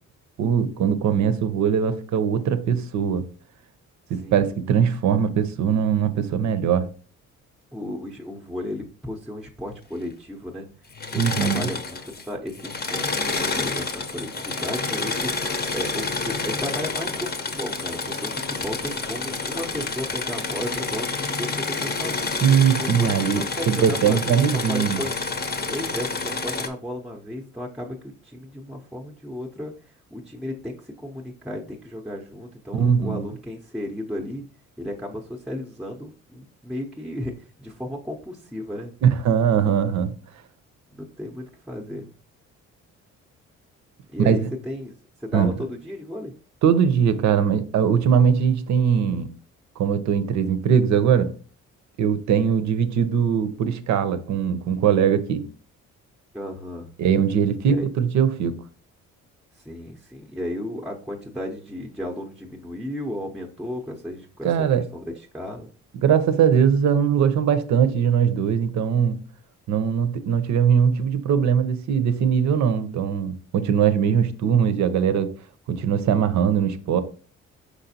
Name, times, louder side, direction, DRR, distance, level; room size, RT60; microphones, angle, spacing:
voice 1, 0.4-3.3 4.1-6.9 11.1-11.7 22.4-25.0 32.8-33.3 39.0-40.1 44.2-44.5 45.3-45.5 46.6-49.3 49.8-51.3 52.0-55.4 57.0-58.6 64.4-64.8 66.0-69.2 69.7-75.3 75.7-77.0, right 7 dB, 70° right, 0.6 m, -21 dB
voice 2, 7.7-10.7 11.1-22.4 22.7-25.1 25.7-29.7 30.1-34.4 34.8-38.9 40.9-42.1 44.1-44.9 45.2-46.3 56.3-56.9 57.6-57.8 59.6-64.5 64.8-65.7, left 1 dB, ahead, 0.6 m, -34 dB
Engine / Mechanisms, 10.9-12.2 12.5-26.7, left 4 dB, 30° left, 0.7 m, -29 dB
5.0 x 3.9 x 2.7 m
cardioid pair, 90°, 30 cm